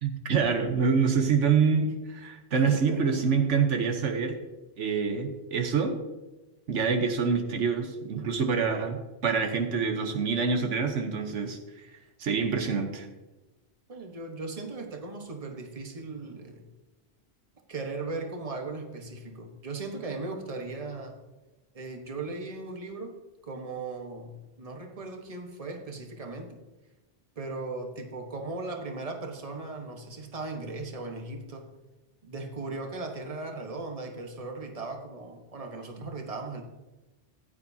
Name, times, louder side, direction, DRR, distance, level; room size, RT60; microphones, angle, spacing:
voice 1, 0.0-4.4 4.8-5.9 6.7-11.6 12.2-13.1, right 5 dB, 85° right, 5 dB, 1.3 m, -26 dB
voice 2, 2.5-3.2 13.9-16.6 17.7-21.2 21.7-23.2 23.4-26.6 27.4-31.6 32.2-36.6, right 3 dB, 30° right, 3 dB, 1.3 m, -37 dB
14.5 x 9.7 x 2.7 m, 1.1 s
omnidirectional pair, 1.2 m